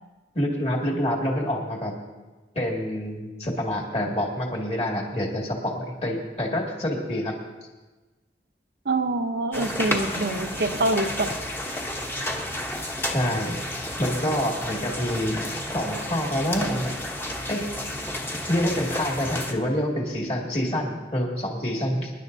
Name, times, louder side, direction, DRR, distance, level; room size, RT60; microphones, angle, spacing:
voice 1, 0.3-1.9 2.5-7.4 13.1-13.6 14.0-15.4 15.7-16.9 17.5-17.7 18.5-22.1, equal, 35° left, -1 dB, 2.3 m, -27 dB
voice 2, 8.9-11.4, right 2 dB, 70° right, 6 dB, 0.8 m, -25 dB
sound 1, 9.5-19.5, left 1 dB, 15° left, 1.0 m, -31 dB
25.5 x 11.0 x 2.7 m, 1.2 s
head